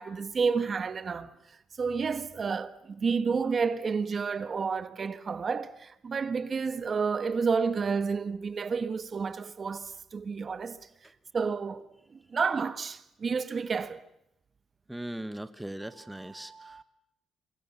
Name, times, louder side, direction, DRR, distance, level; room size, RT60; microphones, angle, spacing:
voice 1, 0.0-10.8 11.3-11.8 12.1-14.0 16.0-16.8, right 5 dB, 40° right, 1.3 m, -30 dB
voice 2, 14.9-16.8, right 1 dB, 5° right, 1.1 m, -39 dB
28.0 x 23.5 x 7.2 m
cardioid pair, 90°, 0 cm